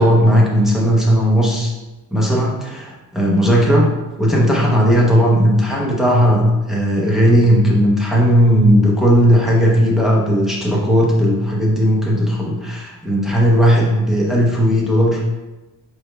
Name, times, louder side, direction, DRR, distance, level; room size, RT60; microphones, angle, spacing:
voice 1, 0.0-1.7 2.1-3.9 4.2-15.2, equal, ahead, -4 dB, 0.7 m, -15 dB
4.8 x 4.4 x 2.3 m, 1.1 s
cardioid pair, 160°, 34 cm